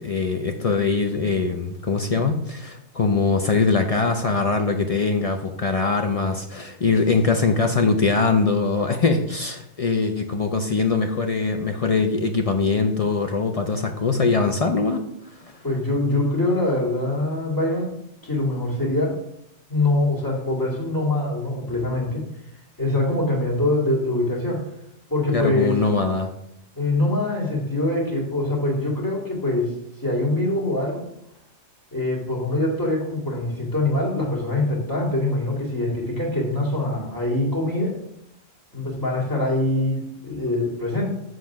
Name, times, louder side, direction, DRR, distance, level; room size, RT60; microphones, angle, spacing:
voice 1, 0.0-15.0 15.4-15.6 25.3-26.3, left 4 dB, 60° left, 4 dB, 0.4 m, -22 dB
voice 2, 15.6-17.9 18.2-19.1 19.7-22.2 22.8-24.6 25.1-25.8 26.8-29.7 30.0-31.1 31.9-38.0 38.7-41.1, left 2 dB, 15° left, -4 dB, 2.3 m, -24 dB
7.4 x 3.9 x 5.8 m, 0.77 s
omnidirectional pair, 1.3 m